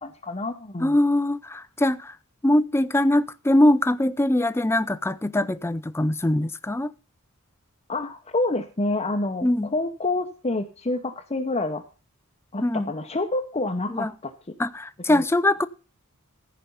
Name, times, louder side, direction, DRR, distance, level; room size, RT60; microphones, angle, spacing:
voice 1, 0.0-1.0 7.9-11.8 12.5-14.3 15.1-15.2, left 2 dB, 30° left, 0.8 m, -28 dB
voice 2, 0.8-2.1 2.4-6.9 9.4-9.7 12.6-12.9 13.9-14.1 14.6-15.7, left 1 dB, 10° left, 0.5 m, -22 dB
14.5 x 5.1 x 5.5 m
head